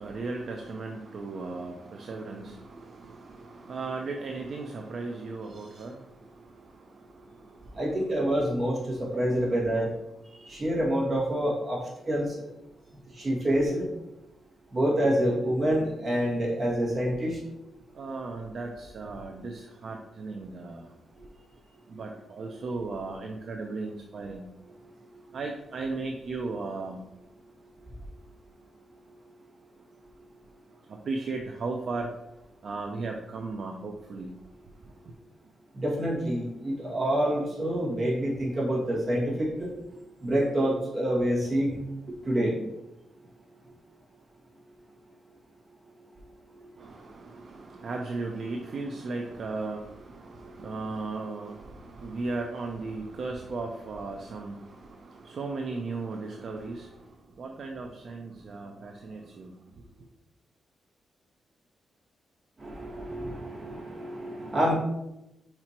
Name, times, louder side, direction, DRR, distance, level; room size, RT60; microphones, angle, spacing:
voice 1, 0.0-8.3 10.3-10.6 12.8-12.9 17.9-21.0 21.9-24.5 25.0-27.1 30.8-35.2 46.8-60.1, right 3 dB, 50° right, 0.5 m, -37 dB
voice 2, 7.7-9.9 10.3-12.4 13.1-13.9 14.7-17.4 35.7-39.7 40.2-41.8 42.2-42.5 46.6-46.7 62.6-64.7, equal, 30° right, 1.9 m, -27 dB
4.9 x 4.4 x 4.4 m
wide cardioid pair, 170°, 0 cm